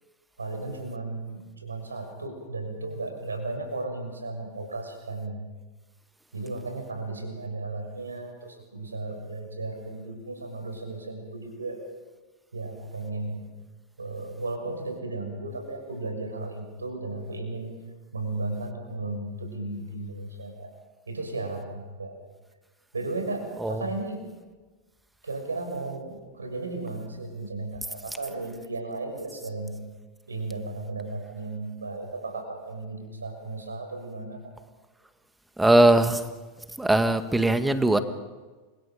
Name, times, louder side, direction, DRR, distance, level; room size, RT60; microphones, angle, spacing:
voice 1, 0.4-5.4 6.3-11.8 12.5-13.4 14.0-17.7 18.1-20.7 21.1-22.2 22.9-24.3 25.2-29.7 30.3-34.5, right 2 dB, 80° right, 6.4 m, -35 dB
voice 2, 35.6-36.3 36.8-38.0, right 1 dB, 5° right, 1.9 m, -20 dB
29.5 x 26.5 x 5.2 m
figure-of-eight pair, 85°, 0 cm